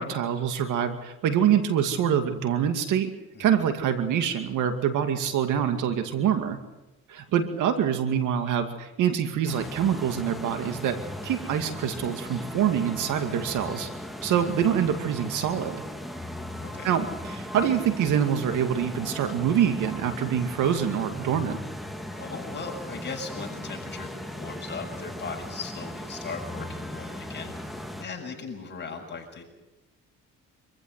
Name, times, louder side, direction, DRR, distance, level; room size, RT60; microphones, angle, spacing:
voice 1, 0.0-3.1 3.4-6.6 7.1-11.0 11.2-13.9 14.2-15.8 16.8-21.6, right 9 dB, 85° right, 7 dB, 2.3 m, -25 dB
sound 1, 9.5-28.0, left 1 dB, ahead, 2.4 m, -37 dB
voice 2, 16.6-17.0 22.1-29.4, left 4 dB, 35° left, 1 dB, 6.9 m, -38 dB
25.5 x 15.0 x 8.2 m, 1.0 s
cardioid pair, 90°, 30 cm